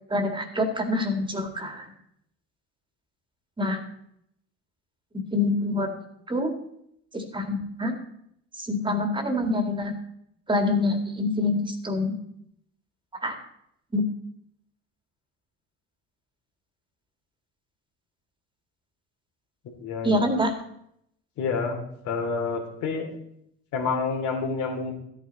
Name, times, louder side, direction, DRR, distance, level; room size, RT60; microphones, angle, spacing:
voice 1, 0.1-1.9 3.6-3.8 5.3-5.9 6.3-6.5 7.1-7.9 8.6-9.9 10.5-12.2 13.2-13.4 13.9-14.0 20.0-20.5, left 2 dB, 15° right, 6 dB, 1.9 m, -26 dB
voice 2, 19.8-20.3 21.4-23.1 23.7-24.9, left 4 dB, 70° left, 3 dB, 2.7 m, -28 dB
13.5 x 9.1 x 4.1 m, 0.74 s
cardioid pair, 100°, 30 cm